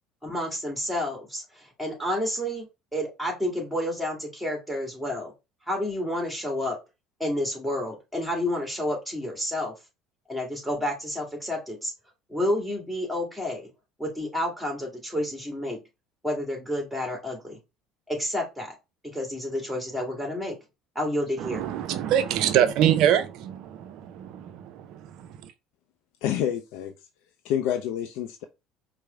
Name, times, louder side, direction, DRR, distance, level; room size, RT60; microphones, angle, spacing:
voice 1, 0.2-5.3 5.7-6.8 7.2-9.7 10.3-11.9 12.3-13.7 14.0-15.8 16.2-17.6 18.1-18.7 19.1-20.6 21.0-21.6, left 1 dB, ahead, 1.9 m, -30 dB
voice 2, 21.4-25.5, right 10 dB, 60° right, 0.4 m, -25 dB
voice 3, 26.2-26.9 27.4-28.5, left 10 dB, 65° left, 0.4 m, -28 dB
4.5 x 2.0 x 3.5 m
hypercardioid pair, 65°, 0 cm